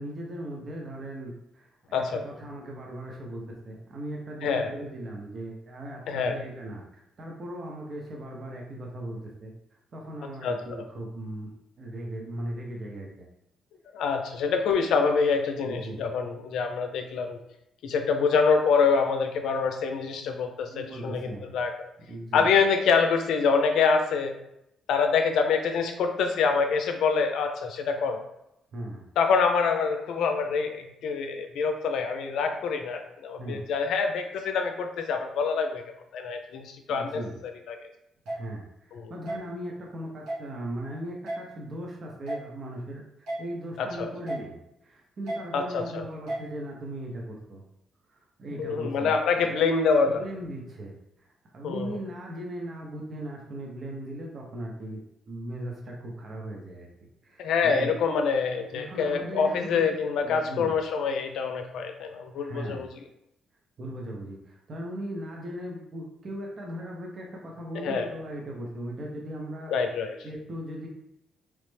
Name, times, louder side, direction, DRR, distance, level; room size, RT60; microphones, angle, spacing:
voice 1, 0.0-6.8 7.2-9.5 9.9-11.5 11.8-13.3 15.6-16.0 20.7-21.6 22.1-22.5 28.7-29.1 33.4-33.7 36.9-37.4 38.3-43.0 43.4-47.6 48.1-49.5 50.1-51.0 51.2-56.9 57.2-57.9 58.7-59.9 60.2-60.7 62.4-62.8 63.8-69.7 70.2-70.9, right 1 dB, 50° right, -1 dB, 0.6 m, -38 dB
voice 2, 1.9-2.2 4.4-4.7 6.1-6.4 10.4-10.6 13.9-17.4 17.8-21.9 22.3-24.3 24.9-28.2 29.2-35.8 36.1-37.2 37.7-37.8 38.9-39.1 43.8-44.1 45.5-46.1 48.6-50.2 51.6-52.0 57.4-62.9 67.8-68.1 69.7-70.2, left 5 dB, 80° left, 5 dB, 0.4 m, -26 dB
sound 1, 38.3-38.4 39.3-39.4 40.3-40.4 41.3-41.4 42.3-42.4 43.3-43.4 44.3-44.4 45.3-45.4 46.3-46.4, right 1 dB, 85° right, 1.0 m, -32 dB
3.1 x 2.0 x 3.2 m, 0.82 s
cardioid pair, 90°, 0 cm